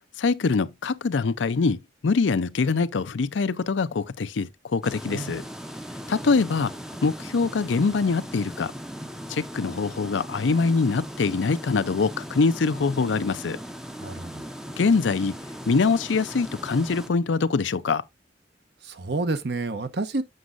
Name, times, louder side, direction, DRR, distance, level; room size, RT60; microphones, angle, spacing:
voice 1, 0.2-5.4 6.1-6.7 7.0-8.7 9.3-13.6 14.8-15.4 15.7-18.0, left 4 dB, 85° left, 0.5 m, -24 dB
sound 1, 4.8-17.1, equal, 5° right, 0.5 m, -38 dB
voice 2, 14.0-14.4 18.8-20.2, right 3 dB, 60° right, 0.8 m, -29 dB
7.7 x 6.2 x 2.5 m
head